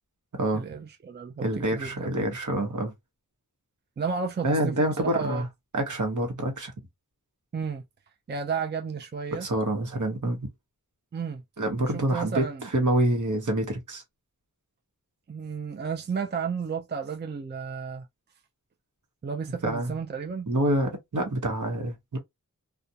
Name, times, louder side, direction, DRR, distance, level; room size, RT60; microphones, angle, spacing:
voice 1, 0.5-2.1 4.0-5.4 7.5-7.8 8.3-9.5 11.1-11.4 11.8-12.7 15.3-18.1 19.2-20.5, right 5 dB, 30° right, 0.4 m, -32 dB
voice 2, 1.4-2.9 4.4-5.5 5.7-6.7 9.3-10.5 11.6-14.0 19.6-19.9 20.5-22.2, right 1 dB, 60° right, 1.0 m, -27 dB
2.4 x 2.2 x 2.7 m
wide cardioid pair, 40°, 34 cm